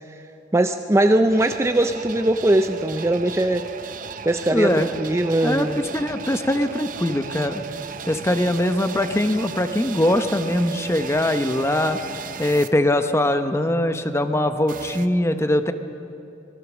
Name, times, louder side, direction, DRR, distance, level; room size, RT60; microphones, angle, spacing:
voice 1, 0.5-3.7 4.2-5.8, right 1 dB, 15° right, 7 dB, 0.5 m, -20 dB
sound 1, 1.3-12.7 14.7-15.1, right 6 dB, 50° right, 0.8 m, -35 dB
voice 2, 4.5-4.9 5.4-5.7 5.9-7.6 8.1-12.0 12.4-15.7, left 1 dB, 15° left, 8 dB, 0.9 m, -21 dB
25.5 x 20.0 x 6.2 m, 2.9 s
head